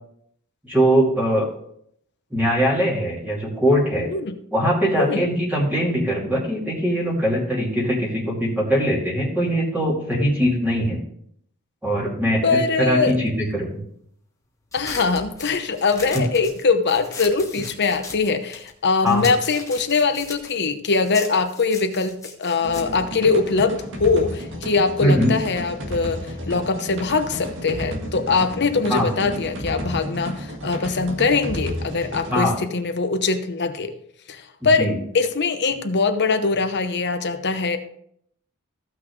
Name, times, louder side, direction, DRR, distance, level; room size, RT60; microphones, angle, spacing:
voice 1, 0.6-1.4 2.3-4.1 4.5-11.0 11.8-13.8 19.0-19.3 25.0-25.3 28.9-29.1 32.3-32.5 34.8-35.0, equal, 10° right, -6 dB, 2.7 m, -21 dB
voice 2, 12.4-13.2 14.7-33.9 34.3-37.8, left 4 dB, 55° left, 8 dB, 0.9 m, -22 dB
sound 1, 14.7-18.8 19.1-23.9, left 3 dB, 15° left, 1.3 m, -38 dB
sound 2, 22.6-32.4, equal, 60° right, 1.8 m, -32 dB
15.5 x 6.0 x 3.2 m, 0.69 s
head